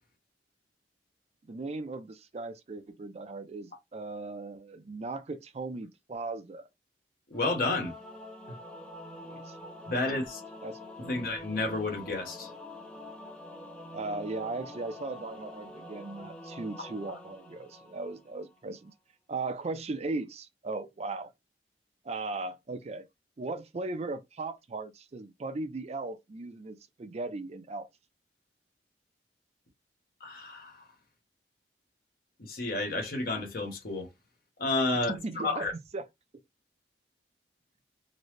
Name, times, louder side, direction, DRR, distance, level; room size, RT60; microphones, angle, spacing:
voice 1, 1.5-6.7 9.2-9.6 10.1-10.2 10.6-11.1 13.9-18.9 19.3-21.3 22.0-23.0 23.4-27.9 35.1-35.7 35.9-36.0, right 3 dB, 40° right, 0.4 m, -37 dB
voice 2, 7.3-7.9 8.5-8.6 9.9-10.4 11.0-12.5 16.8-17.2 30.2-30.8 32.4-34.1 34.6-35.1 35.4-35.7, left 2 dB, 55° left, 1.2 m, -31 dB
Singing / Musical instrument, 7.3-18.6, left 1 dB, 5° left, 0.6 m, -46 dB
3.9 x 2.1 x 3.2 m
head